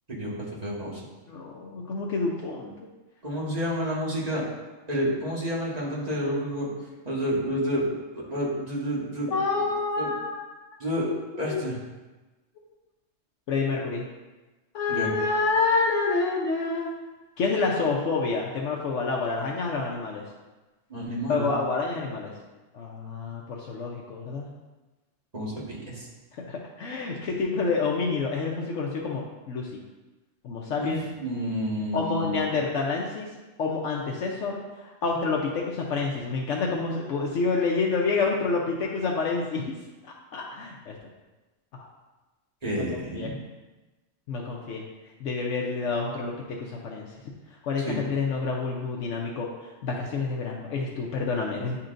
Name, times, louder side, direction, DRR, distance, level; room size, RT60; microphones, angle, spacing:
voice 1, 0.1-1.0 3.2-4.4 4.9-6.7 7.0-7.8 8.1-9.3 9.6-9.7 10.0-10.1 10.8-11.1 11.4-11.7 14.9-15.1 20.9-21.5 25.3-26.1 30.8-32.4 42.6-43.4 47.8-48.0, equal, 30° right, -6 dB, 1.7 m, -29 dB
voice 2, 1.3-2.7 9.3-10.4 11.4-11.6 13.5-14.0 14.7-16.9 17.4-20.2 21.3-22.3 22.7-24.5 26.3-29.7 30.4-31.0 31.9-33.3 33.6-39.7 40.3-41.0 41.7-41.9 42.8-42.9 43.1-43.4 44.3-44.8 45.2-46.3 46.6-47.1 47.6-49.5 49.8-51.8, left 4 dB, 75° left, -2 dB, 1.1 m, -28 dB
9.7 x 4.3 x 2.6 m, 1.2 s
omnidirectional pair, 1.3 m